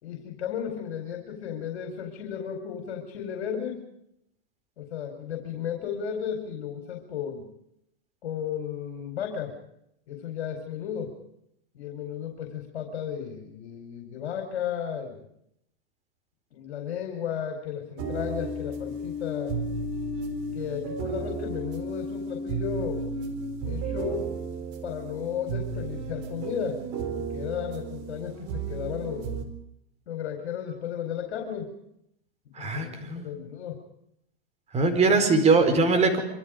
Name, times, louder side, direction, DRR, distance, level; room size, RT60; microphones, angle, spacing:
voice 1, 0.0-3.8 4.8-7.5 8.2-9.5 10.1-11.1 11.7-15.2 16.5-19.6 20.5-23.1 23.6-24.3 24.8-26.8 27.1-29.3 30.1-31.7 32.6-33.8 35.1-35.2, left 8 dB, 65° left, 4 dB, 4.6 m, -34 dB
sound 1, 18.0-29.4, right 3 dB, 40° right, 4.3 m, -33 dB
voice 2, 32.6-33.3 34.7-36.2, right 3 dB, 20° right, 8 dB, 4.6 m, -21 dB
25.5 x 25.0 x 5.2 m, 0.78 s
hypercardioid pair, 130°, 33 cm